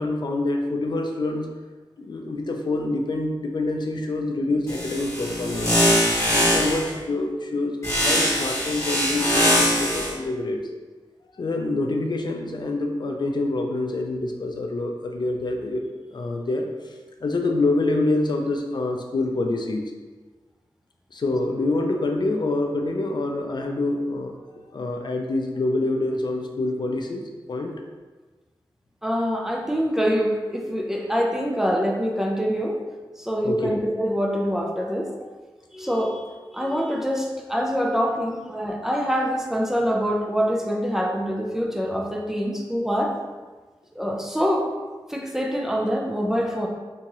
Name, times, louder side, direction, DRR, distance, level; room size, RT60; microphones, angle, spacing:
voice 1, 0.0-1.5 2.0-5.8 6.3-10.6 11.3-15.8 16.1-19.8 21.1-24.3 24.7-27.7 33.4-33.8 34.9-35.0, left 2 dB, 60° left, 2 dB, 0.4 m, -26 dB
sound 1, 4.7-6.9 7.8-10.1, equal, 35° left, 1.2 m, -22 dB
voice 2, 29.0-32.8 33.2-35.1 35.7-43.2 43.9-44.7 45.1-46.7, equal, 5° right, 0 dB, 0.4 m, -25 dB
3.5 x 2.9 x 2.9 m, 1.3 s
wide cardioid pair, 100°, 9 cm